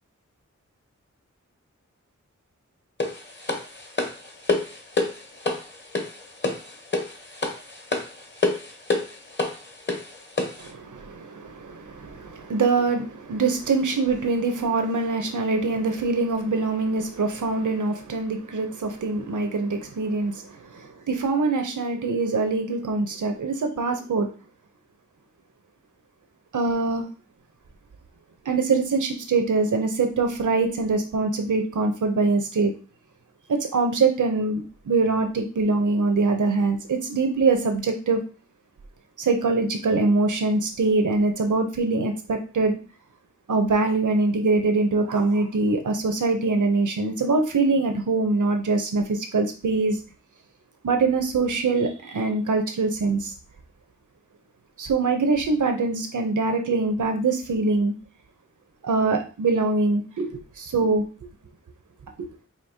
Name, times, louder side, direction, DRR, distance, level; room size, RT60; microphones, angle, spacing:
sound 1, 3.0-10.7, left 3 dB, 35° left, 0.9 m, -28 dB
voice 1, 10.6-24.3 26.5-27.1 28.5-32.7 33.5-38.2 39.2-42.8 43.5-50.0 50.8-53.3 54.8-57.9 58.8-61.0 62.2-62.3, right 3 dB, 80° right, 5 dB, 0.7 m, -23 dB
5.1 x 2.7 x 2.7 m, 0.35 s
wide cardioid pair, 50°, 30 cm